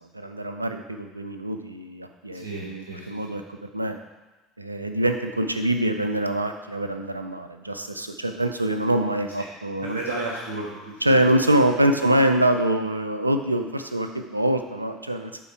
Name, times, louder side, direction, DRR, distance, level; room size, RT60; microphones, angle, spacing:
voice 1, 0.0-4.0 4.6-10.0 11.0-15.4, right 1 dB, 90° right, 7 dB, 0.4 m, -24 dB
voice 2, 2.3-3.4 9.4-9.5 9.8-11.3 11.9-12.2, right 2 dB, 65° right, -4 dB, 1.3 m, -34 dB
9.0 x 3.8 x 4.7 m, 1.2 s
figure-of-eight pair, 65°, 0 cm